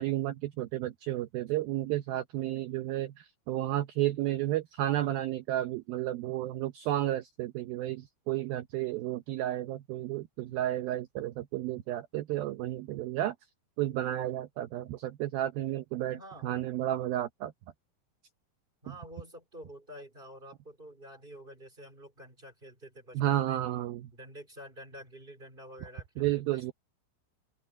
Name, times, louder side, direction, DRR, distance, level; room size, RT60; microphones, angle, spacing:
voice 1, 0.0-13.4 13.8-17.5 18.9-19.0 23.2-24.1 26.2-26.7, right 14 dB, 90° right, 2.1 m, -32 dB
voice 2, 16.1-16.5 18.8-23.6 24.1-26.6, equal, 15° right, 3.1 m, -49 dB
open air
omnidirectional pair, 5.4 m